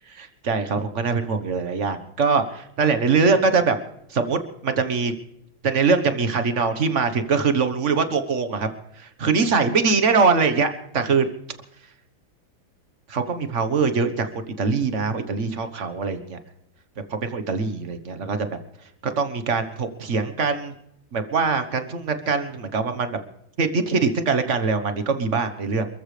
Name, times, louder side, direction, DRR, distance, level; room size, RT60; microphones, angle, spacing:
voice 1, 0.1-3.8 4.1-4.4 4.6-5.1 5.6-8.7 9.0-11.3 13.1-16.4 17.1-18.5 19.2-20.7 21.1-23.2 23.6-25.9, right 4 dB, 40° right, 8 dB, 1.4 m, -22 dB
28.0 x 14.5 x 3.4 m, 0.77 s
omnidirectional pair, 2.2 m